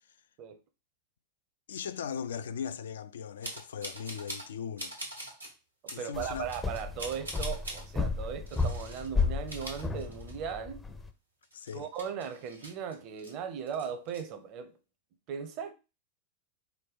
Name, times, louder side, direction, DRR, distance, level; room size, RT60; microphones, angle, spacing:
voice 1, 1.7-4.9 5.9-6.5 11.5-11.9, left 7 dB, 65° left, 0.3 m, -38 dB
sound 1, 3.4-4.5 4.8-5.5 5.9-6.0 6.5-7.8 8.5-9.1 9.4-10.6 10.9-11.0 11.4-13.3 13.7-14.2, right 1 dB, 85° right, 1.3 m, -43 dB
voice 2, 6.0-10.8 11.7-14.8 15.3-15.7, right 7 dB, 40° right, 0.7 m, -38 dB
sound 2, 6.1-11.1, left 4 dB, 10° left, 0.5 m, -33 dB
4.6 x 2.2 x 4.0 m
figure-of-eight pair, 90°, 0 cm